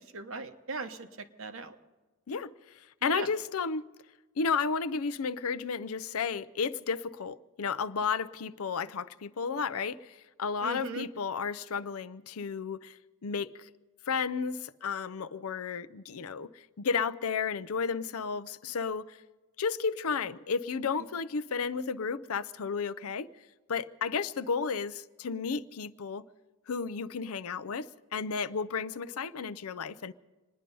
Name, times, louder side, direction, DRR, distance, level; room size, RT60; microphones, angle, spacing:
voice 1, 0.0-1.7 3.0-3.3 10.6-11.1, right 3 dB, 65° right, 1.1 m, -38 dB
voice 2, 2.3-3.9 4.4-13.7 14.1-19.2 19.6-23.3 23.7-26.2 26.7-30.1, left 5 dB, 75° left, 0.6 m, -33 dB
26.5 x 10.0 x 5.3 m
head